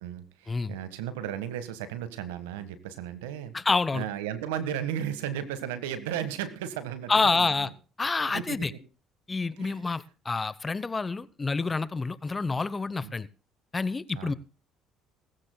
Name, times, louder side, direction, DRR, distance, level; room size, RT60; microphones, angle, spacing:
voice 1, 0.0-3.5 3.9-7.7 8.3-8.8 9.6-9.8 13.0-13.1 14.1-14.4, right 10 dB, 85° right, 12 dB, 1.5 m, -35 dB
voice 2, 3.5-4.0 7.1-7.7 8.0-8.7 9.3-13.3 13.7-14.3, left 4 dB, 25° left, 18 dB, 0.9 m, -28 dB
19.0 x 14.5 x 2.3 m, 0.34 s
hypercardioid pair, 65°, 0 cm